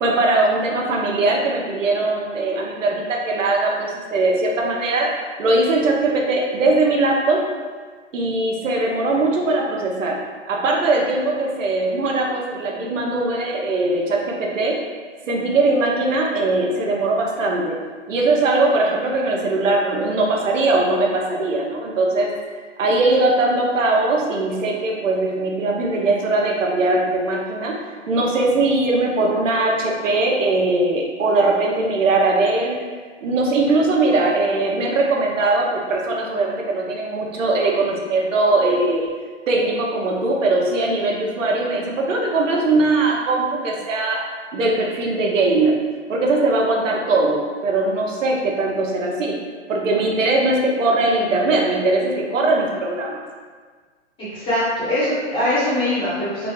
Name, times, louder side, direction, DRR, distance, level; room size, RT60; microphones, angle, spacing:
voice 1, 0.0-5.1 5.4-7.4 8.1-10.2 10.5-14.8 15.3-17.8 18.1-27.7 28.1-32.8 33.2-39.1 39.5-44.2 44.5-45.8 46.1-49.4 49.7-53.2, right 2 dB, 85° right, 0 dB, 0.9 m, -20 dB
voice 2, 54.2-56.5, left 1 dB, 15° left, -11 dB, 1.0 m, -22 dB
4.0 x 2.3 x 3.1 m, 1.5 s
hypercardioid pair, 150°, 37 cm